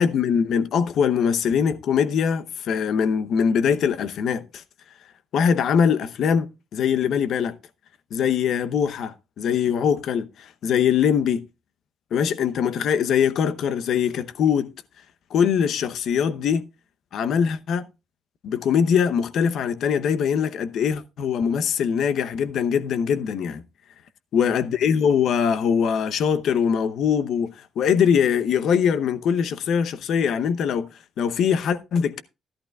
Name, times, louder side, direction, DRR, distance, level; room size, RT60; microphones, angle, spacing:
voice 1, 0.0-4.6 5.3-7.5 8.1-11.4 12.1-14.7 15.3-16.6 17.1-17.8 18.4-23.6 24.3-30.9 31.2-32.2, left 7 dB, 70° left, 0.8 m, -22 dB
14.0 x 11.5 x 2.3 m
cardioid pair, 90°, 0 cm